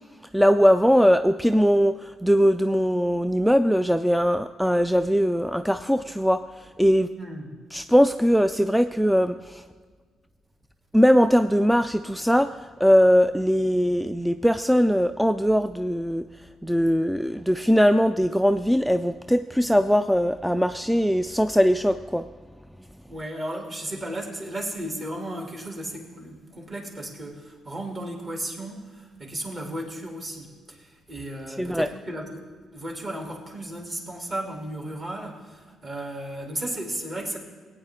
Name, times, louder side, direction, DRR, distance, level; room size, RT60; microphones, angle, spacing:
voice 1, 0.3-7.1 7.7-9.6 10.9-16.2 16.6-22.3 31.6-31.9, equal, ahead, 9 dB, 0.3 m, -21 dB
voice 2, 7.1-7.6 23.1-37.4, right 1 dB, 40° right, 0 dB, 2.8 m, -35 dB
19.0 x 8.9 x 3.7 m, 1.5 s
cardioid pair, 90°, 0 cm